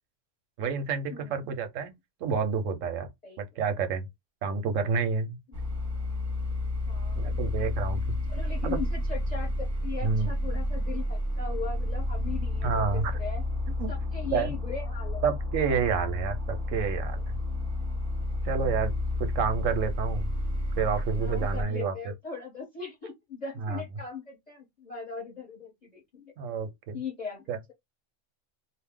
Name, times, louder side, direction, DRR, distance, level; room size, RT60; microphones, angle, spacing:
voice 1, 0.6-1.9 2.2-3.1 3.4-4.0 4.4-5.4 7.2-8.0 8.6-8.8 10.0-10.3 12.6-13.1 13.8-13.9 14.3-14.5 15.2-17.3 18.4-18.9 19.2-20.3 20.8-21.9 23.6-23.8 26.4-27.0 27.5-27.6, right 5 dB, 90° right, 1.1 m, -29 dB
voice 2, 1.1-1.7 3.2-3.4 6.9-7.7 8.3-13.4 13.9-15.2 15.7-16.0 21.2-26.3 26.9-27.7, left 5 dB, 35° left, 1.1 m, -39 dB
sound 1, 5.5-21.6, left 1 dB, 15° right, 0.8 m, -31 dB
2.7 x 2.1 x 3.5 m
omnidirectional pair, 1.3 m